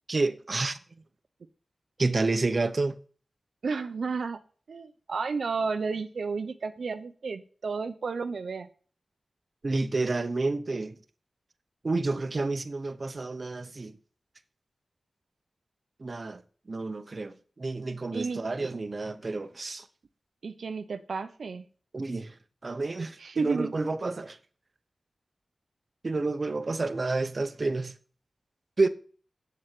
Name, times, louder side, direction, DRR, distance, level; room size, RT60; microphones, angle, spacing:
voice 1, 0.1-0.8 2.0-3.0 9.6-11.0 11.8-13.9 16.0-16.4 16.7-19.9 21.9-22.3 22.6-24.4 26.0-27.9 28.8-28.9, right 3 dB, 45° right, 1.0 m, -29 dB
voice 2, 3.6-4.4 4.7-8.7 18.1-18.7 20.4-21.6 23.2-23.8, right 4 dB, 85° right, 0.8 m, -32 dB
8.0 x 7.8 x 7.7 m
wide cardioid pair, 95°, 0 cm